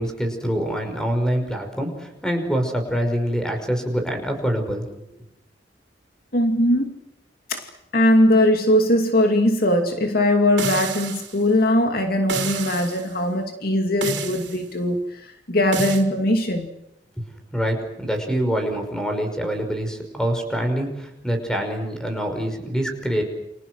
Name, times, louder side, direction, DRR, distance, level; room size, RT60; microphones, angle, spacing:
voice 1, 0.0-4.9 17.2-17.3 17.5-23.2, equal, 5° left, 5 dB, 5.6 m, -25 dB
voice 2, 6.3-6.9 7.5-7.7 7.9-16.7, left 1 dB, 55° left, 5 dB, 2.5 m, -20 dB
sound 1, 10.6-11.4 12.3-13.0 14.0-14.6 15.7-16.0, right 5 dB, 80° right, 3.9 m, -29 dB
29.5 x 27.0 x 6.3 m, 0.82 s
head